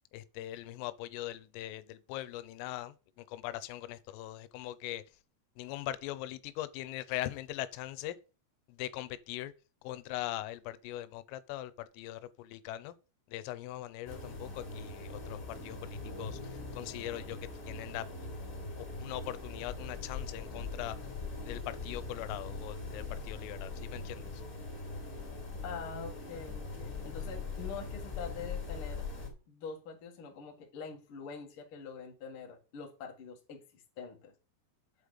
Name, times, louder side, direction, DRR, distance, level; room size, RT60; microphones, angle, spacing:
voice 1, 0.1-5.2 5.6-8.2 8.7-9.5 9.8-13.0 13.3-18.1 18.8-21.1 21.4-24.4, left 14 dB, 90° left, 3.3 m, -41 dB
sound 1, 14.0-29.3, left 3 dB, 20° left, 2.7 m, -41 dB
voice 2, 25.6-29.1 29.5-34.3, left 5 dB, 60° left, 1.4 m, -45 dB
8.1 x 5.0 x 6.5 m
omnidirectional pair, 5.7 m